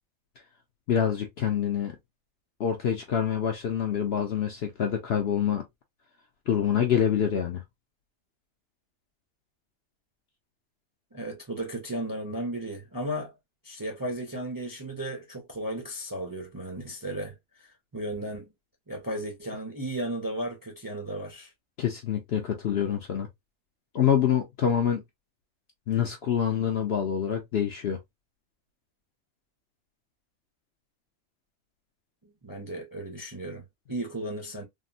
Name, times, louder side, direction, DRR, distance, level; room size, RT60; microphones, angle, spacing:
voice 1, 0.9-2.0 2.6-5.6 6.5-7.6 21.8-23.3 23.9-25.0 25.9-28.0, left 9 dB, 60° left, 0.7 m, -26 dB
voice 2, 11.1-13.3 13.6-18.5 18.9-21.5 32.2-34.6, right 1 dB, 20° right, 0.5 m, -35 dB
3.6 x 2.0 x 2.4 m
omnidirectional pair, 1.4 m